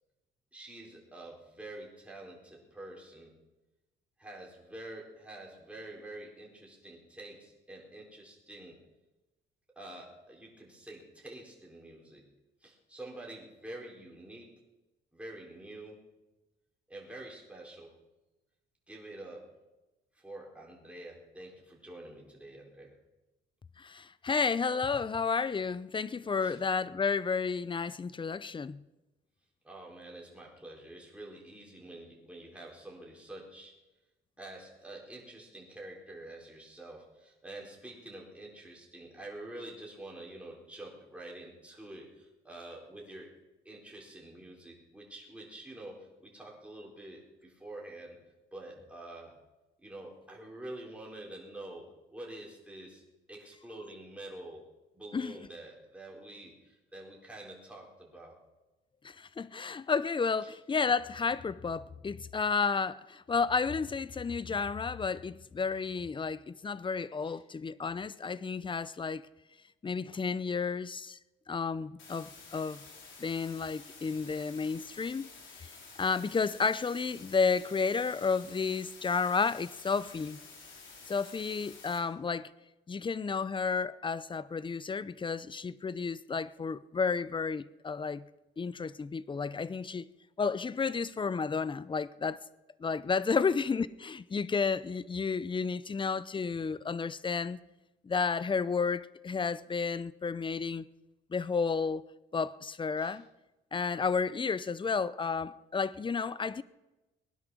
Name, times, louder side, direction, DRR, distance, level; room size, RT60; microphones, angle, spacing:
voice 1, 0.5-3.4 4.2-8.8 9.8-12.2 12.6-14.6 15.1-16.0 16.9-17.9 18.9-19.5 20.1-22.9 26.4-26.6 29.6-33.8 34.4-43.3 43.6-48.2 48.5-49.4 49.8-53.0 53.3-54.6 54.9-58.4 60.4-60.5 67.2-67.4 75.3-75.5 103.0-103.2, right 1 dB, 5° right, 4.3 m, -47 dB
voice 2, 23.8-28.8 55.1-55.4 59.0-69.2 69.8-71.2 71.5-72.8 73.2-75.3 76.0-80.4 81.1-82.5 82.9-88.2 88.6-90.1 90.4-92.4 92.8-97.6 98.0-100.8 101.3-102.0 102.3-103.3 103.7-106.6, left 5 dB, 25° left, 0.6 m, -32 dB
sound 1, 72.0-82.0, left 4 dB, 75° left, 4.1 m, -51 dB
20.0 x 11.0 x 6.3 m
cardioid pair, 90°, 20 cm